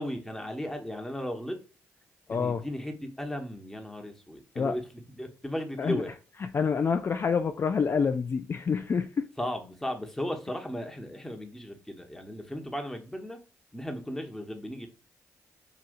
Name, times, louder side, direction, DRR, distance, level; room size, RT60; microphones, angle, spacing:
voice 1, 0.0-1.6 2.3-4.8 5.1-6.1 9.4-13.4 13.7-14.9, equal, 5° left, 1.1 m, -36 dB
voice 2, 2.3-2.6 4.6-4.7 5.8-6.0 6.5-9.2, left 5 dB, 40° left, 0.4 m, -27 dB
5.0 x 2.7 x 2.6 m
supercardioid pair, 60°, 7 cm